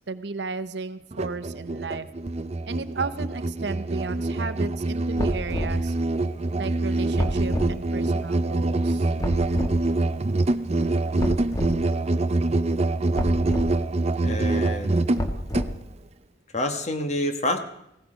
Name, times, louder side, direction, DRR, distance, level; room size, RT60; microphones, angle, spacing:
voice 1, 0.1-2.1 2.7-6.0 6.6-9.1, right 4 dB, 65° right, 12 dB, 0.8 m, -34 dB
Musical instrument, 1.1-15.7, right 2 dB, 35° right, 0.6 m, -25 dB
sound 1, 4.8-12.7, equal, 70° left, 7.0 m, -52 dB
sound 2, 5.2-5.8 7.2-7.7 9.2-9.8 11.2-11.8 13.1-13.7 15.2-15.9, equal, 20° left, 1.3 m, -29 dB
voice 2, 14.2-15.0 16.5-17.6, left 1 dB, 40° left, 6 dB, 1.4 m, -27 dB
17.0 x 15.0 x 5.1 m, 0.81 s
head